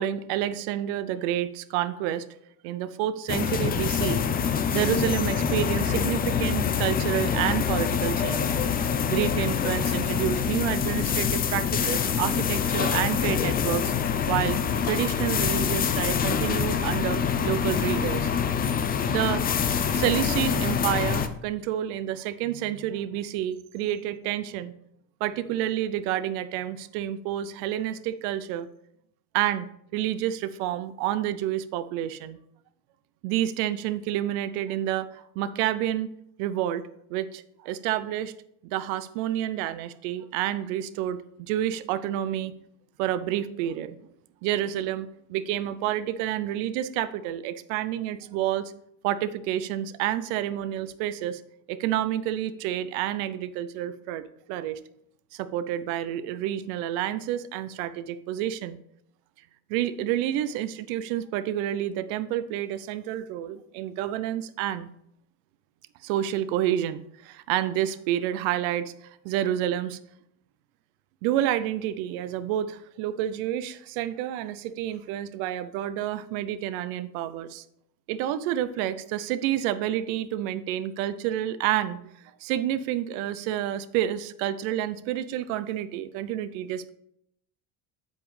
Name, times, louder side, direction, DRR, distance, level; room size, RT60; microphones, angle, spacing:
voice 1, 0.0-2.3 2.6-4.3 4.7-8.5 9.1-13.9 14.3-14.6 14.8-18.3 19.1-19.4 19.9-24.7 25.2-28.7 29.3-29.7 29.9-32.4 33.2-36.1 36.4-38.3 38.6-42.5 43.0-44.1 44.4-48.7 49.0-51.4 51.7-54.8 55.3-58.8 59.7-64.9 66.0-68.9 69.2-70.0 71.2-77.6 78.1-82.1 82.4-86.9, right 12 dB, 85° right, 13 dB, 0.6 m, -29 dB
sound 1, 3.3-21.3, left 7 dB, 25° left, 0.4 m, -25 dB
7.9 x 7.1 x 3.2 m, 0.74 s
cardioid pair, 130°, 41 cm